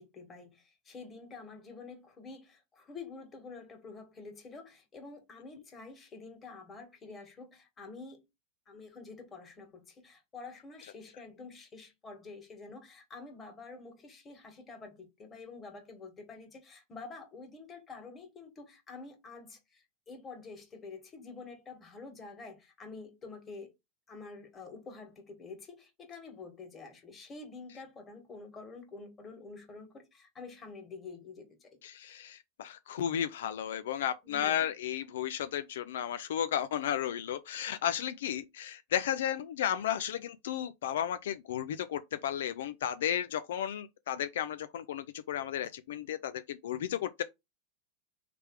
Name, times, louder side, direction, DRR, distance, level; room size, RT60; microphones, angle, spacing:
voice 1, 0.0-8.2 8.7-23.7 24.1-31.7 34.2-34.7, left 4 dB, 25° left, 1.9 m, -48 dB
voice 2, 31.8-47.2, left 10 dB, 80° left, 0.4 m, -34 dB
3.3 x 3.3 x 4.7 m
hypercardioid pair, 115°, 0 cm